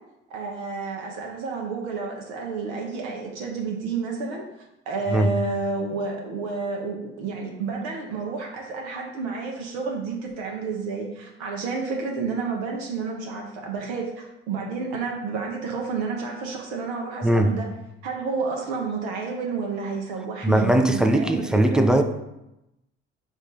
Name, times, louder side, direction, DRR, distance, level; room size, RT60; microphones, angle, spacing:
voice 1, 0.3-4.4 4.9-17.7 18.0-21.8, right 4 dB, 70° right, 0 dB, 0.7 m, -30 dB
voice 2, 20.4-22.0, right 1 dB, ahead, 5 dB, 0.3 m, -19 dB
5.2 x 2.4 x 3.9 m, 0.91 s
figure-of-eight pair, 45°, 33 cm